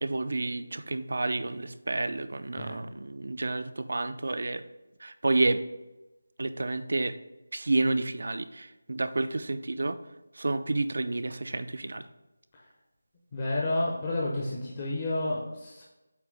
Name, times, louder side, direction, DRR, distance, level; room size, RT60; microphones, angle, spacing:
voice 1, 0.0-4.6 5.0-5.6 6.4-7.2 7.5-10.0 10.3-12.0, right 2 dB, 65° right, 11 dB, 0.5 m, -30 dB
voice 2, 13.3-15.8, left 2 dB, 30° left, -4 dB, 0.8 m, -30 dB
7.9 x 3.0 x 4.8 m, 1.0 s
figure-of-eight pair, 165°, 0 cm